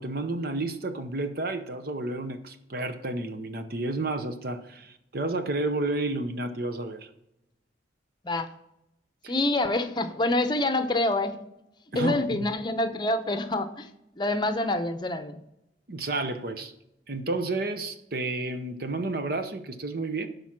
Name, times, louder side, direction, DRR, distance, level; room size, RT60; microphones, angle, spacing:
voice 1, 0.0-7.1 9.2-9.3 11.9-12.4 15.9-16.7 17.1-20.3, right 2 dB, 55° right, 0.8 m, -31 dB
voice 2, 9.3-11.4 11.9-13.9 14.2-15.4, left 2 dB, 25° left, 0.8 m, -26 dB
12.0 x 5.2 x 6.0 m
head